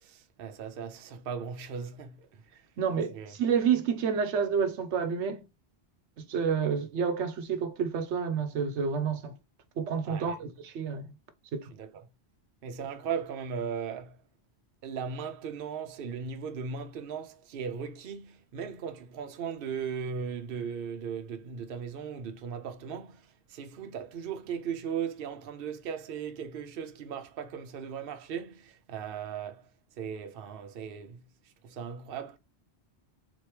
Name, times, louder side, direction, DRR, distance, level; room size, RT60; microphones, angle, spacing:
voice 1, 0.0-2.3 3.1-3.3 10.0-10.4 11.8-12.0 12.6-14.2 14.8-29.7 30.0-31.2 31.6-32.4, right 7 dB, 60° right, 0.8 m, -37 dB
voice 2, 2.8-5.4 6.3-9.3 9.8-11.0 11.5-11.7, right 6 dB, 85° right, 1.0 m, -29 dB
4.1 x 3.0 x 3.2 m
omnidirectional pair, 1.1 m